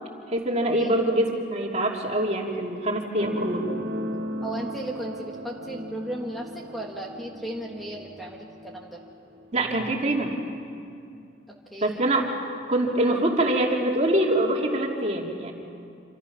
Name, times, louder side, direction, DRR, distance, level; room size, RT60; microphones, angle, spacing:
voice 1, 0.3-3.7 9.5-10.4 11.8-12.3 12.7-15.5, right 1 dB, 40° right, 0 dB, 2.8 m, -24 dB
sound 1, 3.2-10.2 11.1-11.2, equal, 85° right, 2.2 m, -36 dB
voice 2, 4.4-9.0 11.5-12.0, right 1 dB, ahead, -1 dB, 1.5 m, -36 dB
27.0 x 26.5 x 6.0 m, 2.4 s
head